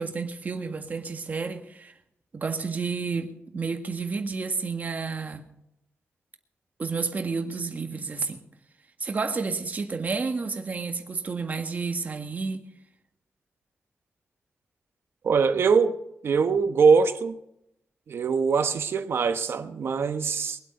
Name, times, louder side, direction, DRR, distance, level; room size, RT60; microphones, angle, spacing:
voice 1, 0.0-1.9 2.3-5.5 6.8-8.4 9.0-12.7, right 4 dB, 40° right, 1.7 m, -31 dB
voice 2, 15.2-16.0 16.2-17.4 18.1-20.6, right 5 dB, 65° right, 1.3 m, -22 dB
23.0 x 8.4 x 5.4 m
wide cardioid pair, 150°, 4 cm